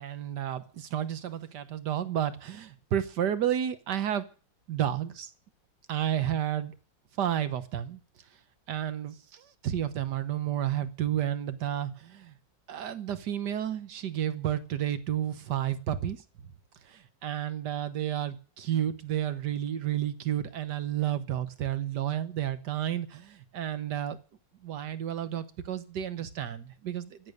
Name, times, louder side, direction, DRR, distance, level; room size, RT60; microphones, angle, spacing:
voice 1, 0.0-4.3 4.7-5.3 5.9-6.7 7.2-8.0 8.7-12.4 12.7-16.2 16.9-24.2 24.6-27.2, right 10 dB, 65° right, 13 dB, 1.7 m, -31 dB
16.0 x 11.0 x 6.7 m, 0.37 s
omnidirectional pair, 2.0 m